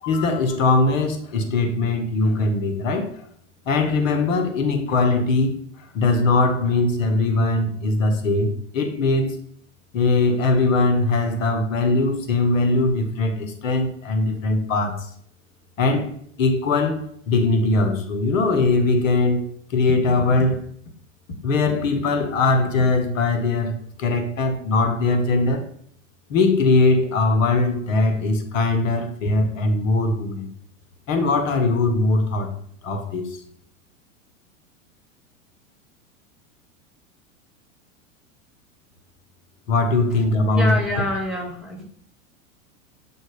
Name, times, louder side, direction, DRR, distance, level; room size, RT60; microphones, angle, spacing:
voice 1, 0.0-3.3 3.7-9.4 9.9-15.1 15.8-19.4 19.7-20.7 21.4-25.7 26.3-30.5 31.1-32.5 32.8-33.4 39.7-40.8, left 3 dB, 70° left, 5 dB, 1.1 m, -21 dB
voice 2, 40.5-41.8, left 1 dB, ahead, -3 dB, 1.7 m, -26 dB
7.6 x 2.6 x 4.8 m, 0.64 s
hypercardioid pair, 100°, 40 cm